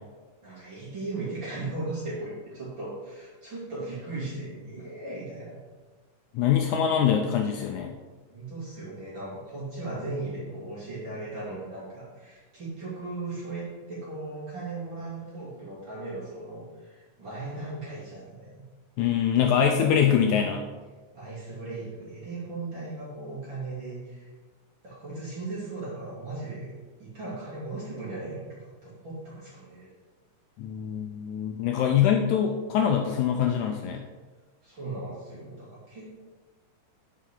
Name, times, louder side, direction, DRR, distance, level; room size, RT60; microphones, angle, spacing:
voice 1, 0.4-5.6 8.3-18.6 19.4-19.6 21.1-24.3 24.8-26.7 27.0-29.9 34.6-36.2, right 2 dB, 35° right, -9 dB, 3.4 m, -37 dB
voice 2, 6.3-8.0 19.0-20.6 30.6-34.0, left 8 dB, 75° left, 3 dB, 1.9 m, -24 dB
10.0 x 6.4 x 3.8 m, 1.3 s
omnidirectional pair, 3.9 m